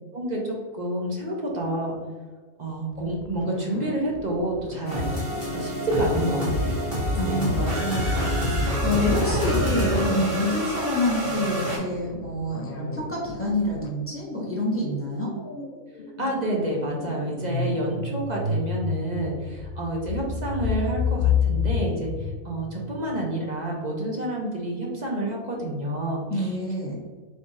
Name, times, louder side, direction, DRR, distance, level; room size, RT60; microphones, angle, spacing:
voice 1, 0.1-2.0 2.6-5.0 5.5-6.8 7.3-7.6 9.0-9.4 16.2-26.5, right 1 dB, 40° right, -2 dB, 0.7 m, -29 dB
sound 1, 2.9-13.9, left 2 dB, 75° left, 1.0 m, -40 dB
sound 2, 4.8-11.8, equal, 20° right, 1.4 m, -26 dB
voice 2, 7.2-8.4 8.8-15.3 26.3-27.0, left 1 dB, 10° left, -6 dB, 1.1 m, -27 dB
sound 3, 13.8-14.1 14.4-23.2, left 6 dB, 60° left, 0.6 m, -29 dB
3.4 x 3.4 x 4.1 m, 1.5 s
omnidirectional pair, 1.5 m